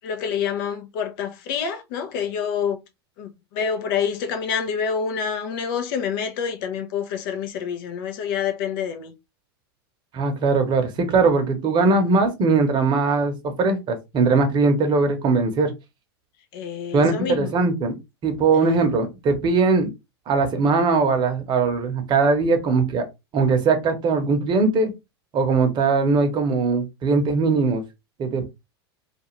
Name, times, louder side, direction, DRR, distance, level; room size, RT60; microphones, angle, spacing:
voice 1, 0.0-2.8 3.2-9.1 16.5-17.5, left 7 dB, 55° left, 0.6 m, -27 dB
voice 2, 10.1-15.7 16.9-18.0 18.2-19.9 20.3-23.1 23.3-24.9 25.3-27.8 28.2-28.5, right 4 dB, 35° right, 0.8 m, -20 dB
2.5 x 2.3 x 3.0 m
hypercardioid pair, 105°, 14 cm